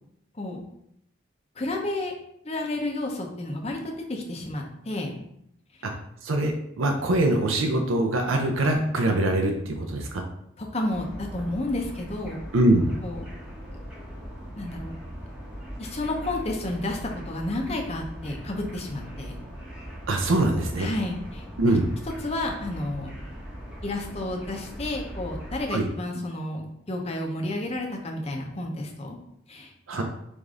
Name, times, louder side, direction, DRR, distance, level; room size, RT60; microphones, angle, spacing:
voice 1, 1.6-2.1 2.4-5.2 5.8-5.9 10.6-12.4 13.0-13.3 14.6-15.0 15.8-19.3 20.8-21.8 22.2-23.1 23.8-29.2 29.5-30.0, left 1 dB, 30° left, 1 dB, 0.6 m, -31 dB
voice 2, 6.2-10.2 12.5-12.8 20.1-20.9 21.6-21.9 25.7-25.9 29.9-30.0, right 1 dB, 75° right, 3 dB, 0.5 m, -23 dB
sound 1, 10.9-25.6, equal, 5° right, 0.8 m, -40 dB
4.9 x 2.6 x 3.6 m, 0.76 s
head